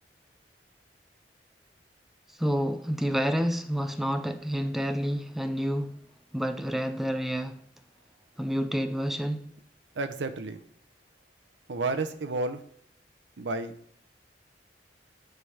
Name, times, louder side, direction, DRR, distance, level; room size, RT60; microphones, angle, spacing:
voice 1, 2.4-5.9 6.3-7.6 8.4-9.4, equal, ahead, 0.4 m, -29 dB
voice 2, 10.0-10.6 11.7-12.6 13.4-13.7, right 3 dB, 85° right, 0.6 m, -31 dB
8.0 x 3.3 x 5.6 m
head